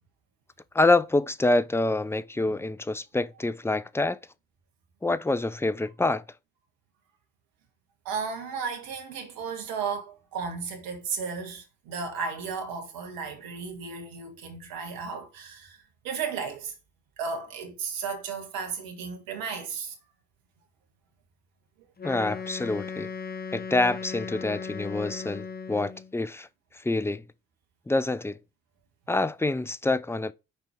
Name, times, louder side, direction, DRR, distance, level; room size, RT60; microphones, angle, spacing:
voice 1, 0.7-4.2 5.0-6.2 22.0-23.1 23.5-26.5 26.8-27.2 27.9-28.4 29.1-30.3, left 2 dB, 5° left, 0.6 m, -26 dB
voice 2, 8.0-15.8 16.0-16.7 17.2-19.9, right 5 dB, 75° right, 1.6 m, -34 dB
Wind instrument woodwind instrument, 22.0-26.1, left 5 dB, 25° left, 1.3 m, -37 dB
6.1 x 4.5 x 4.9 m
hypercardioid pair, 40°, 35 cm